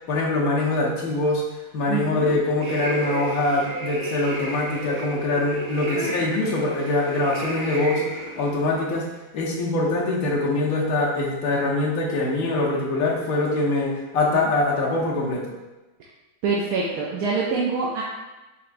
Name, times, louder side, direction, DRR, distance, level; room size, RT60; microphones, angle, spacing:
voice 1, 0.1-1.4 1.7-8.1 8.4-9.1 9.3-15.5, left 2 dB, 55° left, -3 dB, 1.1 m, -23 dB
voice 2, 1.9-2.3 5.9-6.1 16.4-18.0, right 4 dB, 70° right, -4 dB, 0.9 m, -25 dB
sound 1, 2.6-8.5, right 3 dB, 90° right, 1.5 m, -33 dB
5.7 x 3.1 x 2.5 m, 1.1 s
omnidirectional pair, 2.1 m